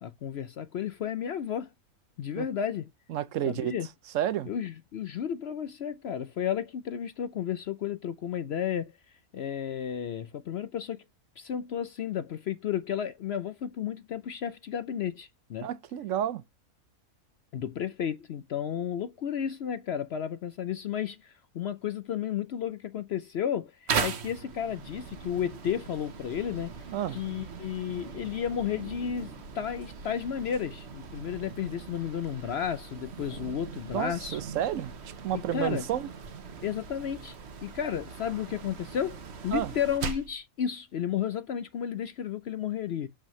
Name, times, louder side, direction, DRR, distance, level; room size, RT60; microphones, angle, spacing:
voice 1, 0.0-1.7 2.2-2.9 3.5-3.9 4.5-8.9 9.3-11.0 11.4-15.7 17.5-26.7 27.1-29.3 29.5-34.4 35.3-35.8 36.6-37.4 37.6-43.1, left 9 dB, 60° left, 0.7 m, -33 dB
voice 2, 3.1-3.7 4.1-4.5 15.6-16.4 26.9-27.2 33.9-34.9 35.2-36.1 39.5-39.7, right 11 dB, 70° right, 0.9 m, -30 dB
sound 1, 23.9-40.4, right 6 dB, 50° right, 1.2 m, -39 dB
7.2 x 5.4 x 3.1 m
omnidirectional pair, 1.5 m